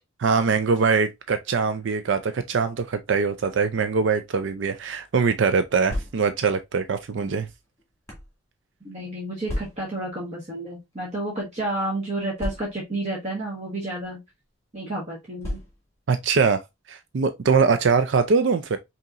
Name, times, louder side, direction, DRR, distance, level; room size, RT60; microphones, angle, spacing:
voice 1, 0.2-7.5 16.1-16.6 16.9-18.8, right 5 dB, 65° right, 0.4 m, -22 dB
sound 1, 5.7-6.5 7.3-8.3 9.4-10.1 10.9-11.1 11.4-11.5 12.4-13.0 13.9-14.1 15.4-16.0, left 1 dB, 15° left, 1.9 m, -34 dB
voice 2, 8.8-14.2 14.7-15.6, right 1 dB, 35° right, 1.3 m, -30 dB
5.4 x 2.9 x 2.4 m
head